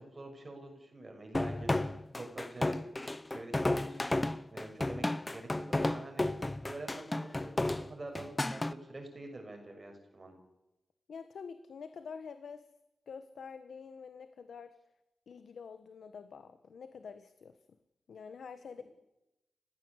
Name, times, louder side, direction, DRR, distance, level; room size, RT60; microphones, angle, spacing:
voice 1, 0.0-2.8 3.3-4.2 4.5-10.4 18.8-18.9, right 2 dB, 30° right, 4 dB, 6.6 m, -47 dB
sound 1, 1.3-8.7, left 2 dB, 15° left, 0.9 m, -32 dB
voice 2, 11.1-12.6 13.1-14.7 15.3-17.6 18.1-18.8, left 6 dB, 90° left, 10 dB, 1.3 m, -47 dB
29.5 x 16.0 x 8.2 m, 0.93 s
wide cardioid pair, 155°, 0 cm